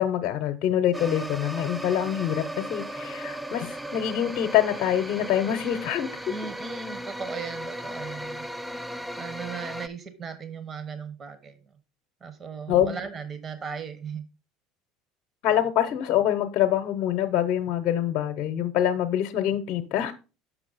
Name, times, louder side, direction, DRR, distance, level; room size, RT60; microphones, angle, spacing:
voice 1, 0.0-6.2 12.7-12.9 15.4-20.1, left 10 dB, 55° left, 0.7 m, -25 dB
sound 1, 0.9-9.9, right 1 dB, 5° right, 0.4 m, -36 dB
voice 2, 6.3-8.5 9.2-11.6 12.2-14.2, right 6 dB, 35° right, 1.1 m, -37 dB
6.1 x 6.0 x 4.0 m
hypercardioid pair, 75°, 0 cm